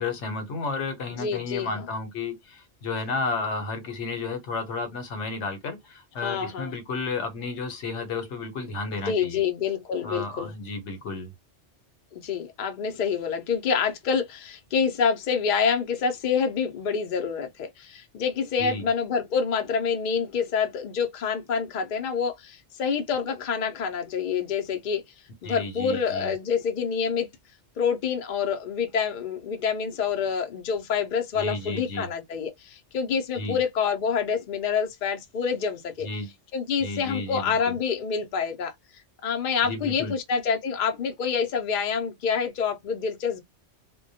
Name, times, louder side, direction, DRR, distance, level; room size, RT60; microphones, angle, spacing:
voice 1, 0.0-9.4 10.0-11.3 18.6-18.8 25.4-26.3 31.3-32.1 33.3-33.6 36.0-36.3 36.8-37.8 39.6-40.2, left 3 dB, 75° left, 1.0 m, -32 dB
voice 2, 1.2-1.8 6.2-6.7 9.1-10.5 12.2-25.0 25.4-27.3 27.8-36.1 36.5-38.7 39.2-43.4, left 6 dB, 55° left, 0.6 m, -27 dB
2.2 x 2.1 x 2.6 m
omnidirectional pair, 1.2 m